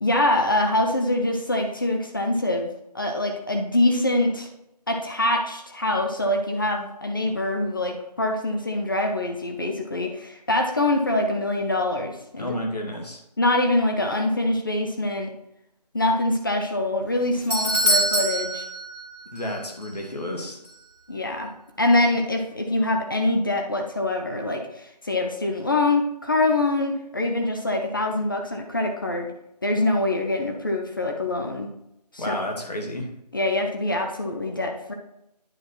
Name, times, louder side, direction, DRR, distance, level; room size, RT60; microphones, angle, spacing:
voice 1, 0.0-2.7 2.9-4.5 4.9-12.5 13.4-15.3 15.9-18.6 21.1-21.5 21.8-29.3 29.6-31.7 32.1-32.4 33.3-34.9, left 2 dB, 30° left, 3 dB, 0.6 m, -24 dB
voice 2, 12.4-13.2 19.3-20.6 32.2-33.1, left 1 dB, 70° left, 0 dB, 2.0 m, -31 dB
Doorbell, 17.0-19.5 19.8-19.9 20.7-20.8, right 1 dB, 70° right, 2.0 m, -25 dB
9.0 x 4.3 x 4.4 m, 0.84 s
figure-of-eight pair, 155°, 21 cm